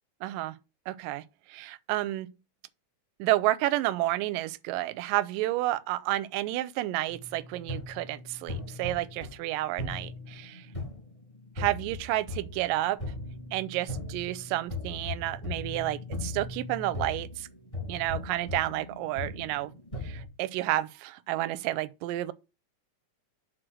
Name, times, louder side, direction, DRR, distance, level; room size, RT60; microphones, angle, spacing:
voice 1, 0.2-0.6 0.9-2.3 3.2-10.7 11.6-13.0 13.5-17.5 17.9-19.7 20.0-22.3, right 16 dB, 90° right, 2.2 m, -30 dB
sound 1, 7.1-20.2, left 2 dB, 15° left, 1.4 m, -39 dB
6.3 x 4.6 x 6.1 m
omnidirectional pair, 3.8 m